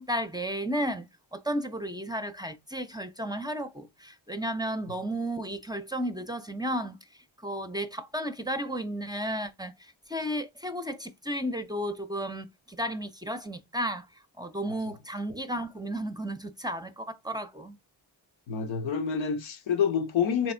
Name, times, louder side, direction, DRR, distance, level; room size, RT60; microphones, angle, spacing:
voice 1, 0.0-7.0 7.4-14.1 14.4-17.8, equal, 10° right, 0.5 m, -33 dB
voice 2, 18.5-20.5, left 7 dB, 85° left, 0.9 m, -27 dB
3.4 x 3.1 x 4.3 m
cardioid pair, 75°, 46 cm